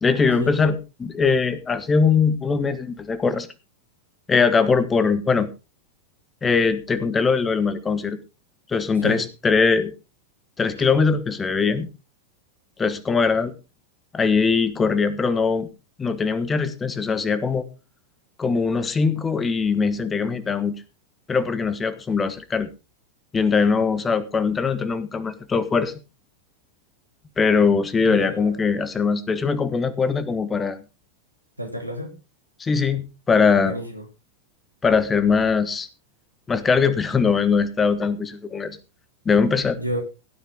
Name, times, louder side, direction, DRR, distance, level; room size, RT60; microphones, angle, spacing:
voice 1, 0.0-3.5 4.3-5.5 6.4-8.2 8.7-9.9 10.6-11.9 12.8-13.5 14.1-15.7 16.0-17.7 18.4-20.8 21.3-22.7 23.3-25.9 27.4-30.8 32.6-33.8 34.8-35.9 36.5-38.8 39.2-39.8, left 5 dB, 15° left, 14 dB, 1.3 m, -21 dB
voice 2, 28.1-28.5 31.6-32.1 33.6-34.0 39.8-40.0, equal, 90° right, 4 dB, 2.7 m, -30 dB
16.5 x 9.4 x 3.7 m, 0.29 s
figure-of-eight pair, 90°, 0 cm